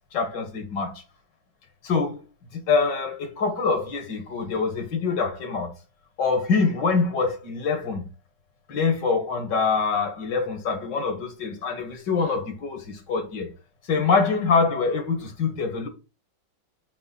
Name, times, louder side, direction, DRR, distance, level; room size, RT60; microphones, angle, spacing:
voice 1, 0.1-0.9 1.8-2.2 2.5-5.7 6.2-8.0 8.7-13.5 13.9-15.9, left 4 dB, 65° left, 2.2 m, -25 dB
7.8 x 3.4 x 5.5 m
omnidirectional pair, 2.1 m